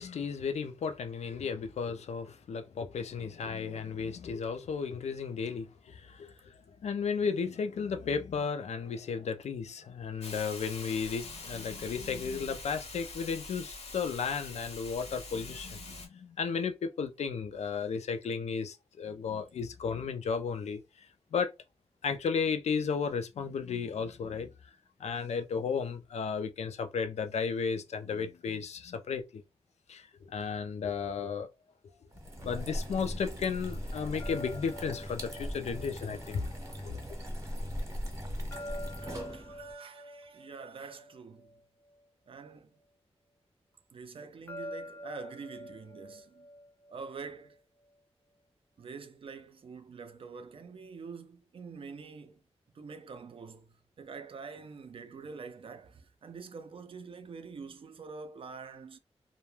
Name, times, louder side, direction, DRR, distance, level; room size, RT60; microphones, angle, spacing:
voice 1, 0.0-6.3 6.8-20.8 21.3-21.5 22.0-24.5 25.0-29.4 29.9-31.5 32.4-36.5 36.8-37.0, left 6 dB, 90° left, 0.4 m, -34 dB
Hiss, 10.2-16.1, left 3 dB, 70° left, 0.7 m, -44 dB
sound 1, 32.1-39.7, equal, 30° right, 0.7 m, -39 dB
sound 2, 34.2-37.3 38.5-42.0 44.5-47.6, left 1 dB, 15° left, 0.4 m, -46 dB
voice 2, 39.0-41.5 42.3-42.7 43.9-46.5 46.9-47.6 48.8-52.4 52.7-59.0, right 5 dB, 55° right, 0.3 m, -46 dB
2.2 x 2.1 x 3.1 m
wide cardioid pair, 145°, 11 cm